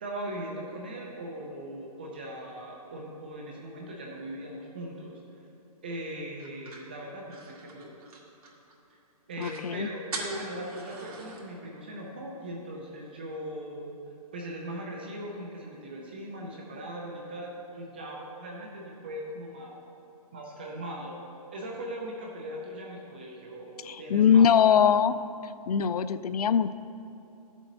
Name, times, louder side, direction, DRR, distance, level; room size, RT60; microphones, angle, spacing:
voice 1, 0.0-5.2 5.8-7.9 8.9-9.0 9.3-14.0 14.3-19.8 20.3-21.2 21.5-24.5, right 1 dB, 15° right, -2 dB, 0.5 m, -39 dB
sound 1, 6.4-8.8 9.1-9.2 9.4-9.7 10.1-11.4, right 3 dB, 70° right, 2.1 m, -42 dB
voice 2, 9.4-9.9 23.8-25.2 25.7-26.7, left 8 dB, 75° left, 13 dB, 0.4 m, -22 dB
12.0 x 7.2 x 4.0 m, 2.9 s
hypercardioid pair, 175°, 19 cm